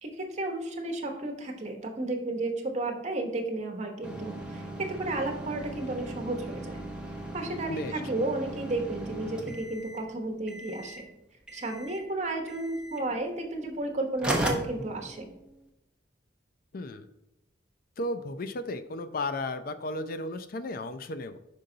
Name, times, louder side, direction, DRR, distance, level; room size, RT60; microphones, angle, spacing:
voice 1, 0.0-6.8 7.3-11.1 11.5-15.3, right 2 dB, 40° right, 3 dB, 1.1 m, -33 dB
sound 1, 4.0-10.1 10.5-11.1 11.5-12.1 12.5-13.0 13.8-13.9 14.2-15.5, right 1 dB, 5° right, 0.8 m, -37 dB
voice 2, 7.7-8.0 16.7-17.1 18.0-21.4, left 2 dB, 50° left, 10 dB, 0.4 m, -34 dB
5.6 x 5.3 x 3.8 m, 0.91 s
head